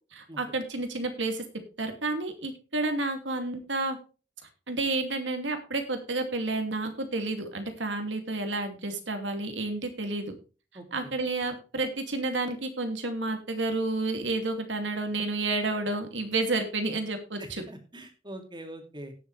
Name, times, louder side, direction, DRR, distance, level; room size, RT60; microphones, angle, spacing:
voice 1, 0.1-1.4 1.8-4.0 4.7-10.3 10.9-17.6, right 2 dB, 85° right, 6 dB, 2.6 m, -30 dB
voice 2, 10.7-11.1 17.4-19.1, right 1 dB, 25° right, 4 dB, 2.5 m, -43 dB
18.0 x 6.9 x 3.3 m, 0.34 s
head